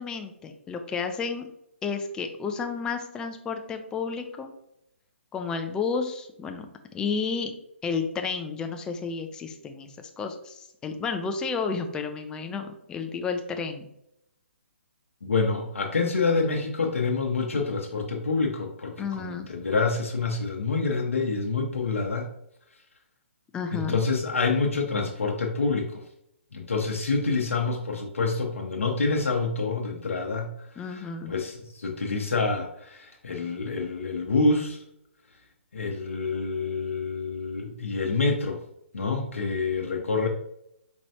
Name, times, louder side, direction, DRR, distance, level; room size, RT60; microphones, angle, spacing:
voice 1, 0.0-1.5 1.8-4.5 5.3-6.7 6.9-7.5 7.8-13.9 19.0-19.5 23.5-24.0 30.8-31.3, left 5 dB, 10° left, 5 dB, 0.4 m, -31 dB
voice 2, 15.2-22.3 23.7-26.0 26.5-30.5 30.9-34.8 35.7-38.6 38.9-40.3, left 4 dB, 75° left, 0 dB, 0.8 m, -27 dB
4.4 x 3.0 x 2.7 m, 0.77 s
figure-of-eight pair, 140°, 7 cm